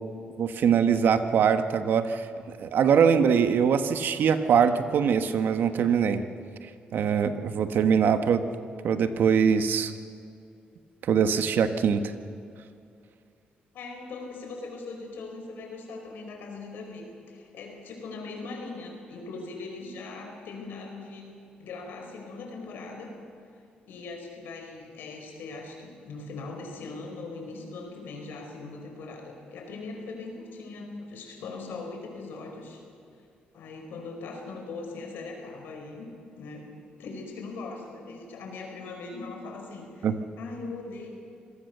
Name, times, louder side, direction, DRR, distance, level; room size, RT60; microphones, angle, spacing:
voice 1, 0.4-6.2 6.9-8.4 8.8-9.9 11.0-12.0 40.0-40.1, right 7 dB, 70° right, 9 dB, 1.4 m, -23 dB
voice 2, 13.7-21.3 21.6-23.1 23.8-32.8 33.5-36.7 37.0-40.1 40.4-41.1, left 3 dB, 80° left, 3 dB, 5.0 m, -40 dB
26.0 x 18.5 x 6.8 m, 2.4 s
cardioid pair, 70°, 3 cm